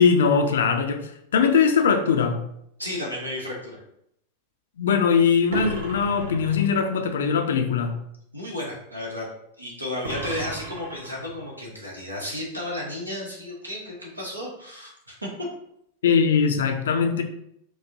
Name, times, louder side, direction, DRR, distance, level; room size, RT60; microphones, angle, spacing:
voice 1, 0.0-2.4 4.8-7.9 16.0-17.2, left 6 dB, 60° left, 6 dB, 0.4 m, -21 dB
voice 2, 2.8-3.8 8.3-9.3 9.6-15.5, left 1 dB, 85° right, -2 dB, 1.0 m, -33 dB
sound 1, 5.5-7.0 10.0-11.5, right 1 dB, 60° right, 0.8 m, -35 dB
4.6 x 2.1 x 2.7 m, 0.74 s
figure-of-eight pair, 90°, 0 cm